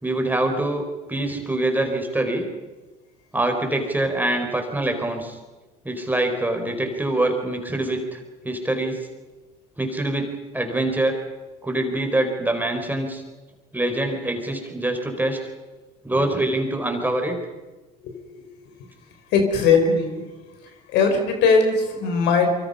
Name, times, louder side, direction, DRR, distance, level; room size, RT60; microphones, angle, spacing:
voice 1, 0.0-2.5 3.3-5.4 5.8-8.2 8.4-9.1 9.8-11.2 11.6-13.2 13.7-15.4 16.0-17.4, right 1 dB, 10° right, 4 dB, 4.7 m, -24 dB
voice 2, 18.0-18.5 19.3-20.3 20.9-22.7, left 4 dB, 70° left, 5 dB, 4.7 m, -20 dB
25.5 x 24.0 x 5.6 m, 1.2 s
hypercardioid pair, 75°, 18 cm